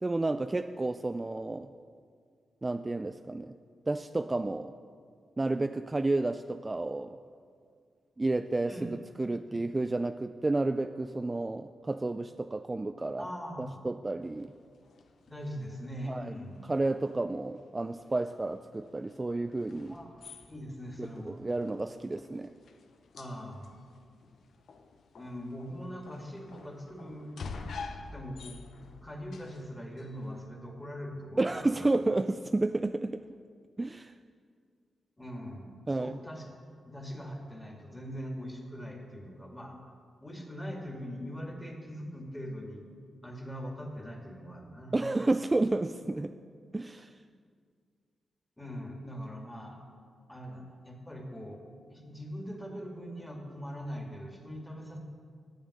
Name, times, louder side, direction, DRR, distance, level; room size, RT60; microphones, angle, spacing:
voice 1, 0.0-1.7 2.6-3.5 3.9-4.7 5.4-7.2 8.2-8.9 9.2-13.3 13.8-14.5 16.1-16.3 16.7-20.0 21.0-22.5 31.4-33.2 33.8-34.1 35.9-36.2 44.9-46.3 46.7-47.1, right 2 dB, 25° right, 9 dB, 0.3 m, -31 dB
voice 2, 13.2-13.7 15.3-16.6 19.9-20.2 20.5-21.4 23.2-23.7 25.2-27.4 27.9-28.6 29.0-31.9 35.2-36.5 36.9-39.8 40.2-42.9 43.2-45.0 48.6-49.8 50.3-51.6 51.9-55.0, equal, 10° left, 1 dB, 2.0 m, -41 dB
sound 1, 14.2-30.5, left 4 dB, 75° left, 0.7 m, -49 dB
9.0 x 7.2 x 6.4 m, 2.1 s
cardioid pair, 60°, 0 cm